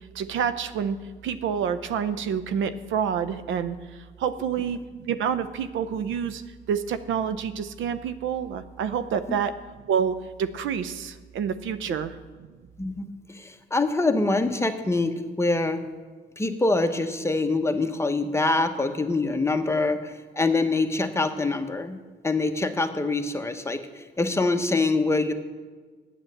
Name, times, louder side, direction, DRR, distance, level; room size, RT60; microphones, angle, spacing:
voice 1, 0.1-1.0 1.2-3.8 4.2-6.4 6.7-9.6 9.9-12.2, right 7 dB, 75° right, 12 dB, 0.6 m, -28 dB
voice 2, 13.3-15.8 16.4-22.0 22.2-25.3, left 3 dB, 15° left, 6 dB, 0.9 m, -25 dB
8.9 x 8.4 x 7.8 m, 1.4 s
cardioid pair, 90°, 20 cm